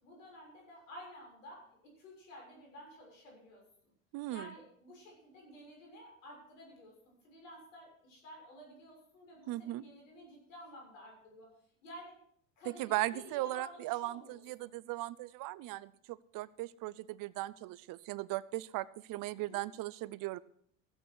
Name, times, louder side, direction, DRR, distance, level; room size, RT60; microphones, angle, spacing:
voice 1, 0.0-3.6 4.3-6.9 7.2-11.5 11.8-12.2 12.6-14.7 19.3-19.6, equal, 85° left, -1 dB, 6.7 m, -52 dB
voice 2, 4.1-4.5 9.5-9.8 12.7-20.4, right 17 dB, 55° right, 20 dB, 0.7 m, -38 dB
15.0 x 8.5 x 6.2 m, 0.64 s
hypercardioid pair, 75°, 38 cm